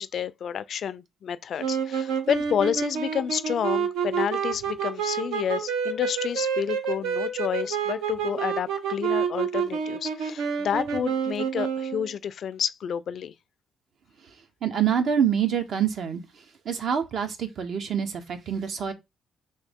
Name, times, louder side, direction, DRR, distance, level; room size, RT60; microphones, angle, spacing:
voice 1, 0.0-13.3, left 8 dB, 60° left, 0.3 m, -30 dB
sound 1, 1.6-12.1, right 7 dB, 85° right, 0.7 m, -28 dB
voice 2, 14.6-16.2 16.6-18.9, right 8 dB, 65° right, 0.9 m, -26 dB
3.6 x 2.7 x 3.5 m
cardioid pair, 90°, 0 cm